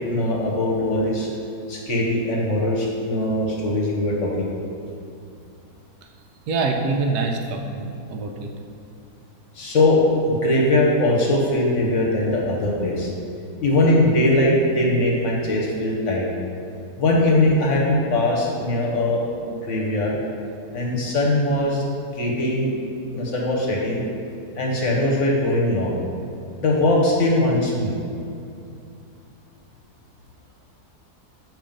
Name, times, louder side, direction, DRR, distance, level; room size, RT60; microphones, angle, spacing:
voice 1, 0.1-1.3 1.7-4.5 9.5-13.1 13.6-16.3 17.0-19.2 19.6-20.2 20.7-21.8 22.1-22.7 23.1-24.0 24.6-26.0 26.6-27.9, left 1 dB, 55° left, -2 dB, 1.1 m, -21 dB
voice 2, 6.5-8.5, right 3 dB, 90° right, 3 dB, 1.2 m, -25 dB
7.2 x 3.1 x 5.1 m, 2.5 s
omnidirectional pair, 1.7 m